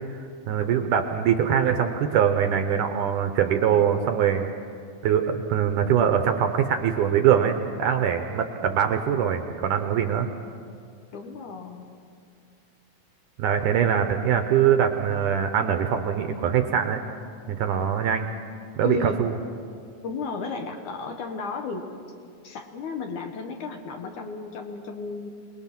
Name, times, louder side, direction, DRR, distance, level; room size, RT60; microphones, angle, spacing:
voice 1, 0.5-4.5 5.0-10.3 13.4-17.0 17.5-18.3 18.8-19.4, right 8 dB, 75° right, 6 dB, 2.1 m, -23 dB
voice 2, 11.1-11.9 18.8-19.2 20.0-21.9 22.4-25.3, left 4 dB, 65° left, 4 dB, 2.3 m, -33 dB
27.0 x 20.0 x 6.0 m, 2.4 s
omnidirectional pair, 4.3 m